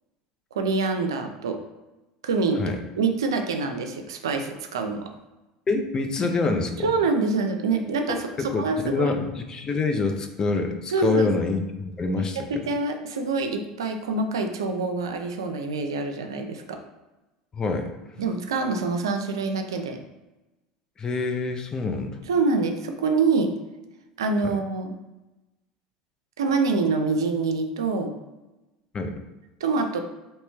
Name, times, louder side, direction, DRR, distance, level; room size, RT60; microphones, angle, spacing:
voice 1, 0.5-1.6 2.2-5.1 6.8-9.1 10.9-11.3 12.1-16.8 18.2-20.0 22.3-23.5 24.2-24.9 26.4-28.1 29.6-30.0, right 4 dB, 90° right, 5 dB, 0.4 m, -26 dB
voice 2, 5.7-6.9 8.1-12.5 17.5-17.9 21.0-22.2 24.4-24.6 28.9-29.2, left 3 dB, 30° left, 5 dB, 0.6 m, -26 dB
3.0 x 2.9 x 3.4 m, 1.0 s
hypercardioid pair, 85°, 2 cm